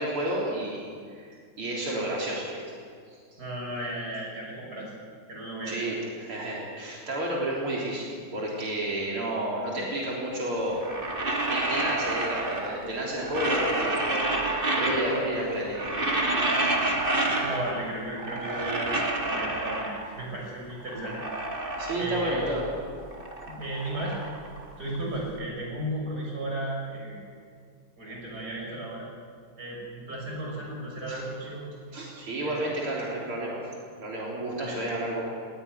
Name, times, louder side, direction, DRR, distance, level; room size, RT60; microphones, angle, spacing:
voice 1, 0.0-2.6 3.1-3.2 5.7-10.8 11.3-14.4 14.8-15.9 16.4-16.7 21.1-21.2 21.8-22.7 31.1-31.2 31.9-33.6 34.0-35.3, right 1 dB, 85° right, -4 dB, 4.5 m, -31 dB
voice 2, 3.4-4.9 5.3-6.0 17.4-21.2 22.0-22.5 23.5-24.2 24.8-27.2 28.0-29.1 29.6-31.6 32.4-32.5 34.6-34.8, right 1 dB, 45° right, -2 dB, 7.0 m, -34 dB
sound 1, 10.7-12.9 13.2-15.4 15.6-17.9 18.2-20.2 20.7-22.7 23.0-25.2, right 2 dB, 25° right, 2.0 m, -29 dB
19.0 x 17.5 x 9.7 m, 2.1 s
omnidirectional pair, 2.3 m